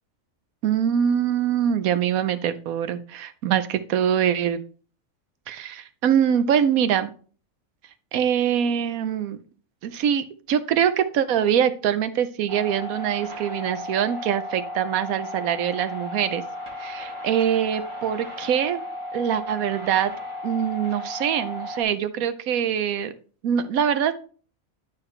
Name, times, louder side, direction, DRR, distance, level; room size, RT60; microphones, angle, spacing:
voice 1, 0.6-4.6 5.5-7.1 8.1-9.4 9.8-16.4 16.8-18.8 19.1-20.1 20.4-23.1 23.4-24.1, right 9 dB, 90° right, 11 dB, 1.1 m, -23 dB
sound 1, 12.5-21.8, left 1 dB, 20° right, 2.4 m, -35 dB
11.0 x 4.8 x 3.2 m, 0.41 s
omnidirectional pair, 1.4 m